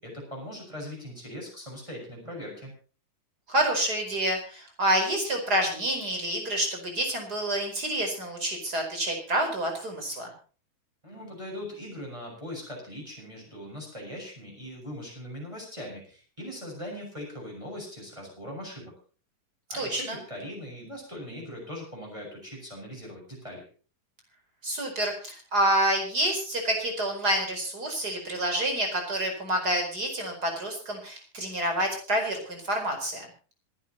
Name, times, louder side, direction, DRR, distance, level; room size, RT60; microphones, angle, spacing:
voice 1, 0.0-2.7 11.0-18.9 19.7-23.6, left 1 dB, 10° right, -1 dB, 6.9 m, -40 dB
voice 2, 3.5-10.3 19.7-20.2 24.6-33.3, right 1 dB, 25° right, 4 dB, 5.1 m, -28 dB
26.0 x 11.5 x 3.0 m, 0.38 s
omnidirectional pair, 3.9 m